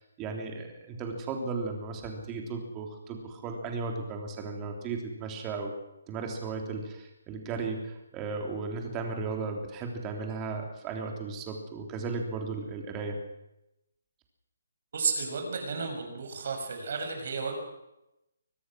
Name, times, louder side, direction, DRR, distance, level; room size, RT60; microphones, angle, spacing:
voice 1, 0.2-5.7 6.1-13.2, right 4 dB, 15° right, 3 dB, 3.5 m, -35 dB
voice 2, 14.9-17.6, right 4 dB, 50° right, 4 dB, 6.5 m, -32 dB
23.5 x 19.5 x 6.4 m, 0.90 s
hypercardioid pair, 165°, 0 cm